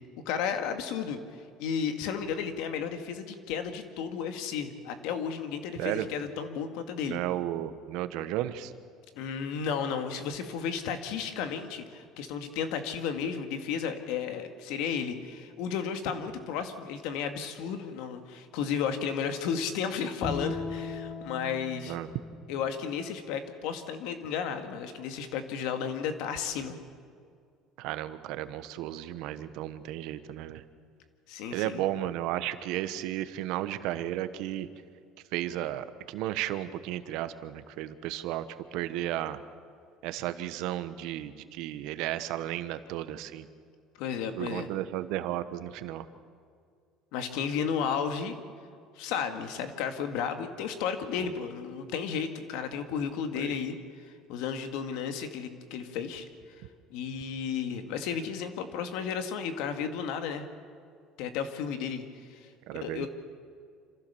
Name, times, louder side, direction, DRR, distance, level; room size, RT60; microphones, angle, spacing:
voice 1, 0.3-1.2 1.6-7.2 9.2-22.0 22.5-26.8 31.3-31.8 44.0-44.7 47.1-48.4 49.0-53.8 54.3-56.3 56.9-60.5 61.2-63.1, left 7 dB, 80° left, 7 dB, 2.0 m, -33 dB
voice 2, 5.7-6.1 7.1-8.7 21.9-22.1 27.8-30.6 31.5-34.7 35.3-38.4 38.7-39.4 40.0-43.5 44.4-46.1 51.2-51.3 53.3-53.5 62.7-63.1, right 13 dB, 75° right, 12 dB, 1.1 m, -34 dB
Bowed string instrument, 20.2-23.5, left 3 dB, 40° left, 4.0 m, -39 dB
27.0 x 15.0 x 7.0 m, 2.2 s
cardioid pair, 125°, 0 cm